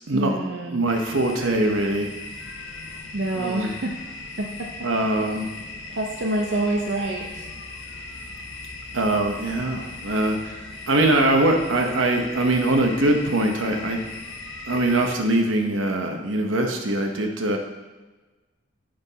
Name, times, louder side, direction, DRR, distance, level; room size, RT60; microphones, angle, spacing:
voice 1, 0.1-0.8 3.1-3.9 4.4-4.7 5.9-7.5, right 2 dB, 65° right, 1 dB, 0.6 m, -27 dB
voice 2, 0.7-2.1 3.4-3.7 4.8-5.5 8.9-14.0 14.7-17.6, right 1 dB, 90° right, 3 dB, 0.9 m, -22 dB
sound 1, 0.9-15.2, left 3 dB, 70° left, 1.0 m, -38 dB
7.9 x 5.6 x 4.0 m, 1.2 s
head